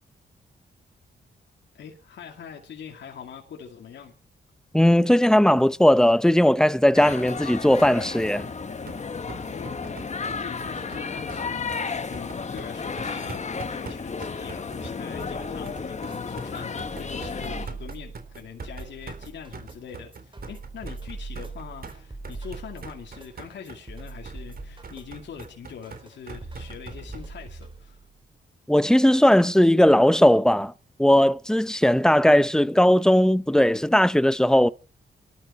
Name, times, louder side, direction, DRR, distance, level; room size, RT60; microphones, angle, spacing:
voice 1, 1.7-4.1 9.5-9.9 10.4-28.0, left 7 dB, 75° left, 2.5 m, -43 dB
voice 2, 4.7-8.5 28.7-30.7 31.0-34.7, left 1 dB, 5° left, 0.7 m, -18 dB
sound 1, 6.9-17.7, left 5 dB, 40° left, 1.6 m, -33 dB
sound 2, 7.8-27.2, right 4 dB, 55° right, 3.6 m, -43 dB
sound 3, 15.2-28.2, right 3 dB, 25° right, 4.2 m, -42 dB
25.0 x 12.5 x 4.3 m
cardioid pair, 85°, 19 cm